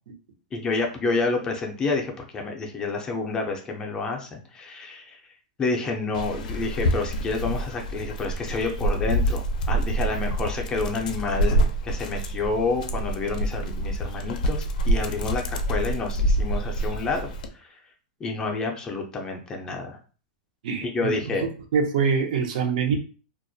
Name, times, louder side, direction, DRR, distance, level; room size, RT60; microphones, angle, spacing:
voice 1, 0.5-5.2 5.6-17.7 18.2-20.0 20.8-21.4, left 3 dB, 15° left, 2 dB, 0.4 m, -29 dB
Dog, 6.1-17.5, right 1 dB, 75° left, 0.4 m, -26 dB
voice 2, 20.6-21.1 21.7-23.0, right 5 dB, 65° right, 4 dB, 0.6 m, -24 dB
2.2 x 2.1 x 2.6 m, 0.38 s
supercardioid pair, 150°, 4 cm